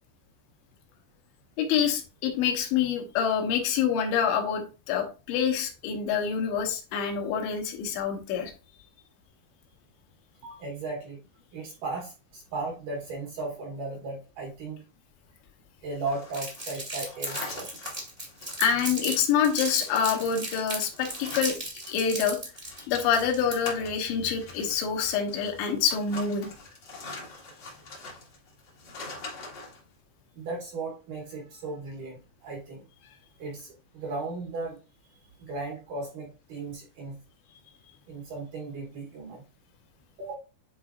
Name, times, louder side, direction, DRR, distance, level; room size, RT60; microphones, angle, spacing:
voice 1, 1.6-8.5 18.6-21.6 21.9-22.4 22.9-26.5, left 7 dB, 80° left, 3 dB, 3.3 m, -26 dB
voice 2, 10.4-11.2 11.5-14.8 15.8-17.7 30.4-32.8 33.4-34.8 35.4-37.2 38.1-39.4 40.2-40.4, right 3 dB, 65° right, -1 dB, 2.2 m, -36 dB
sound 1, 16.0-22.1 22.4-29.8, left 2 dB, 65° left, 1.1 m, -43 dB
Crumpling crinkling, 16.3-19.1 19.4-23.9, right 1 dB, 30° right, 0.8 m, -35 dB
10.0 x 3.9 x 2.4 m, 0.32 s
omnidirectional pair, 5.1 m